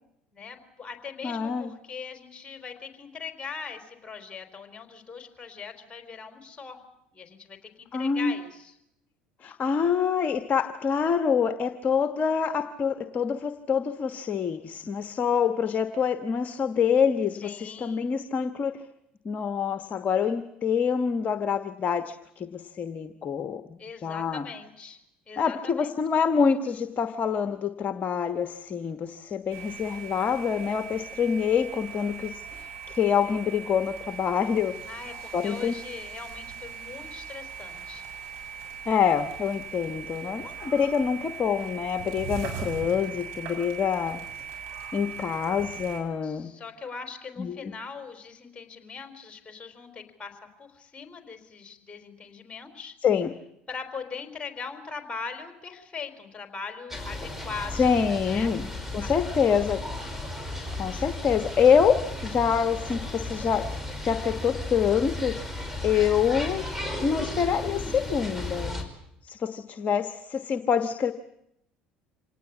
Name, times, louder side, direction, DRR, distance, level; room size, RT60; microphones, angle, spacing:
voice 1, 0.3-6.8 7.1-8.7 17.4-18.1 23.8-25.0 25.3-25.9 34.9-38.1 46.2-53.0 53.7-57.9 58.3-58.5 59.0-59.1, left 5 dB, 25° left, 6 dB, 4.2 m, -41 dB
voice 2, 1.2-1.7 7.9-8.3 9.4-18.7 19.2-24.4 25.4-34.7 35.3-35.7 38.8-44.2 44.9-46.5 47.4-47.7 53.0-53.3 57.7-59.8 60.8-62.0 62.2-63.8 64.1-66.7 67.0-68.8 69.2-71.1, left 7 dB, 40° left, 9 dB, 1.3 m, -26 dB
sound 1, 29.5-46.0, right 7 dB, 60° right, 7.6 m, -40 dB
sound 2, 56.9-68.8, left 2 dB, 5° right, 5.5 m, -35 dB
26.5 x 18.5 x 8.4 m, 0.81 s
hypercardioid pair, 65°, 4 cm